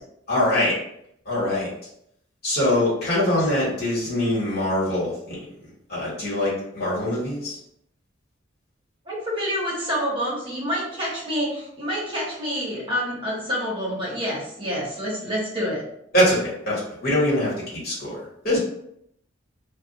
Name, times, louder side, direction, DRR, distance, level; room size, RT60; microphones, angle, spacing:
voice 1, 0.3-0.7 1.2-1.7 2.4-7.6 16.1-17.5 17.8-18.6, left 1 dB, 50° left, -7 dB, 1.3 m, -23 dB
voice 2, 9.1-15.8, equal, 25° right, -6 dB, 1.0 m, -27 dB
2.4 x 2.1 x 3.9 m, 0.74 s
head